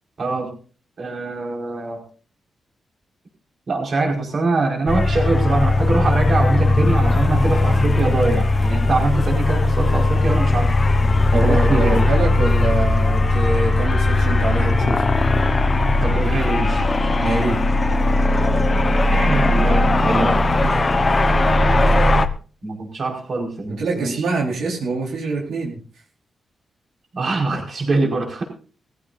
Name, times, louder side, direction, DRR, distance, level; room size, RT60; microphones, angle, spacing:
voice 1, 0.2-0.5 1.0-2.0 3.7-10.8 11.4-12.0 15.9-16.8 19.1-20.3 22.6-24.2 27.1-28.4, right 3 dB, 45° right, 1 dB, 5.0 m, -23 dB
sound 1, 4.9-22.3, left 2 dB, 30° left, 1.1 m, -18 dB
voice 2, 11.3-15.0 17.2-17.7 20.0-20.4 20.6-20.8 23.8-25.8, right 3 dB, 85° right, -1 dB, 4.4 m, -24 dB
19.5 x 15.5 x 2.7 m, 0.38 s
wide cardioid pair, 135°, 0 cm